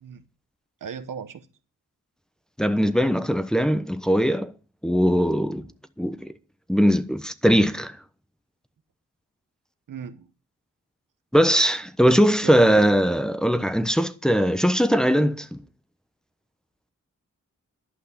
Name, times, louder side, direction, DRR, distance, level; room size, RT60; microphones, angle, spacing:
voice 1, 0.8-1.5 9.9-10.3 12.4-13.1, right 7 dB, 80° right, 1.2 m, -37 dB
voice 2, 2.6-4.5 4.8-5.7 6.0-6.3 6.7-8.0 11.3-15.6, equal, ahead, 1.0 m, -20 dB
11.5 x 5.7 x 8.3 m
cardioid pair, 55°, 32 cm